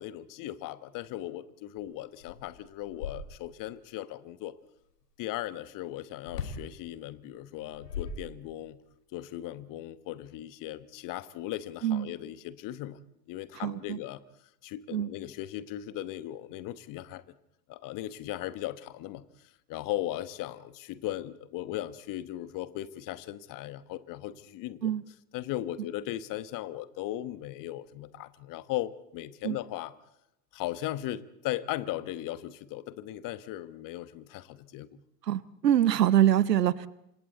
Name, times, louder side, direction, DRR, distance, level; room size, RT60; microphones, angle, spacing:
voice 1, 0.0-4.5 5.2-8.8 9.1-13.0 13.3-14.2 14.6-17.3 17.7-19.2 19.7-24.9 25.3-29.9 30.5-35.0, left 14 dB, 40° left, 15 dB, 1.3 m, -37 dB
sound 1, 1.8-1.9 2.2-3.7 6.3-6.7 7.6-8.8, left 5 dB, 75° left, 2.4 m, -39 dB
voice 2, 13.6-14.0 14.9-15.1 24.8-25.0 29.4-29.6 35.3-36.9, right 11 dB, 75° right, 20 dB, 0.9 m, -24 dB
28.5 x 25.5 x 4.1 m, 0.81 s
figure-of-eight pair, 75°, 48 cm